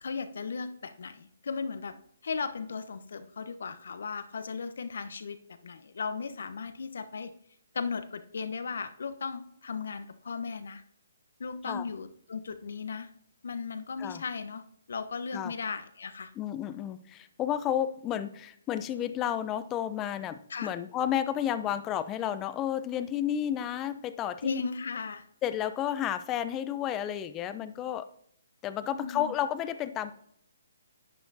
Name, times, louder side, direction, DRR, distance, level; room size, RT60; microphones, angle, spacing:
voice 1, 0.0-2.0 2.2-7.3 7.7-10.8 11.4-13.1 13.4-16.3 20.5-20.7 24.4-25.2 28.9-29.3, left 5 dB, 65° left, 10 dB, 1.0 m, -36 dB
voice 2, 16.4-24.6 25.4-28.1 28.6-30.2, left 10 dB, 20° left, 12 dB, 0.7 m, -32 dB
11.0 x 10.0 x 2.8 m, 0.68 s
figure-of-eight pair, 135°, 0 cm